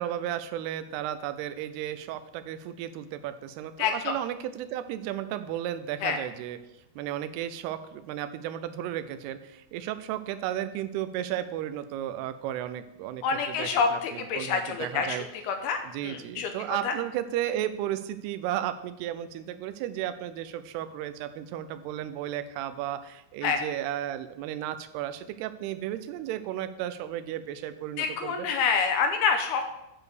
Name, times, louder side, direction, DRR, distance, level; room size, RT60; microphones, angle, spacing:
voice 1, 0.0-6.6 7.0-15.3 15.8-28.5, right 11 dB, 85° right, 11 dB, 2.3 m, -34 dB
voice 2, 3.8-4.1 6.0-6.2 13.2-16.5 16.8-16.9 23.4-23.6 28.0-29.6, left 5 dB, 80° left, 5 dB, 2.4 m, -27 dB
9.6 x 4.8 x 6.6 m, 0.85 s
omnidirectional pair, 5.2 m